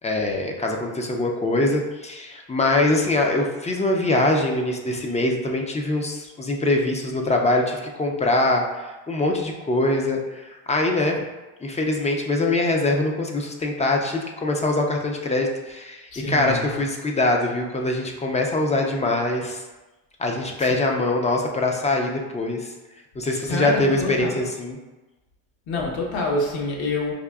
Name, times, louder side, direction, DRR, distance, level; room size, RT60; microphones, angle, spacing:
voice 1, 0.0-11.2 11.6-19.6 20.2-22.7 23.2-24.8, left 2 dB, 15° left, 1 dB, 0.3 m, -23 dB
voice 2, 16.1-16.8 23.5-24.5 25.7-27.1, left 2 dB, 70° left, -1 dB, 1.0 m, -27 dB
4.8 x 2.5 x 2.3 m, 1.1 s
cardioid pair, 95°, 45 cm